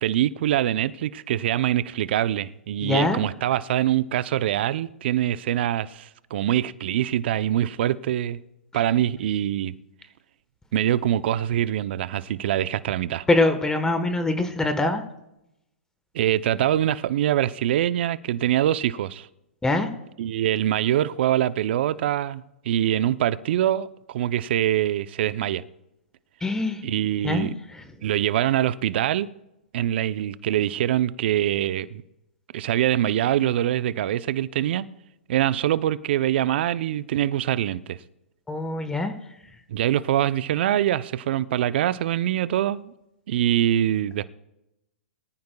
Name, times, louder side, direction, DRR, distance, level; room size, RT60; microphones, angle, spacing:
voice 1, 0.0-8.4 8.7-9.7 10.7-13.3 16.1-19.3 20.2-25.6 26.8-27.5 28.0-29.3 29.7-32.0 32.5-34.9 35.3-38.0 39.7-42.9 43.3-44.3, right 12 dB, 55° right, 0.6 m, -24 dB
voice 2, 2.8-3.2 13.3-15.0 19.6-19.9 26.4-26.8 27.2-27.8 38.5-39.1, left 2 dB, 10° left, 1.2 m, -23 dB
23.0 x 14.0 x 2.3 m
hypercardioid pair, 125°, 7 cm